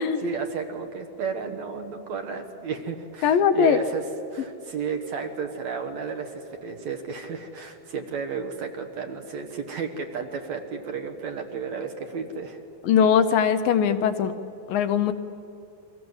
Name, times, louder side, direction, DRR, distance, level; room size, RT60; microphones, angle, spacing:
voice 1, 0.2-4.0 4.3-12.6, right 5 dB, 60° right, 5 dB, 2.2 m, -32 dB
voice 2, 3.2-3.8 12.8-14.3 14.7-15.1, left 8 dB, 75° left, 9 dB, 2.4 m, -20 dB
28.5 x 24.0 x 8.0 m, 2.7 s
omnidirectional pair, 4.4 m